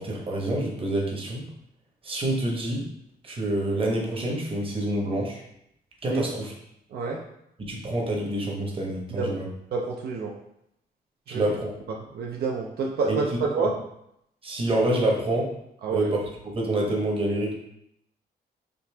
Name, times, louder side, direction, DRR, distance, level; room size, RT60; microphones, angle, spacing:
voice 1, 0.0-1.5 2.0-2.8 3.2-5.4 6.0-6.5 7.6-9.5 11.3-11.7 13.1-13.2 14.4-15.5 15.9-16.2 16.4-17.5, right 1 dB, 30° right, -2 dB, 1.0 m, -27 dB
voice 2, 9.1-9.4 9.7-10.3 11.3-11.4 11.9-13.7 15.8-16.1, right 4 dB, 70° right, -1 dB, 0.5 m, -28 dB
5.2 x 2.8 x 3.3 m, 0.77 s
wide cardioid pair, 155°, 17 cm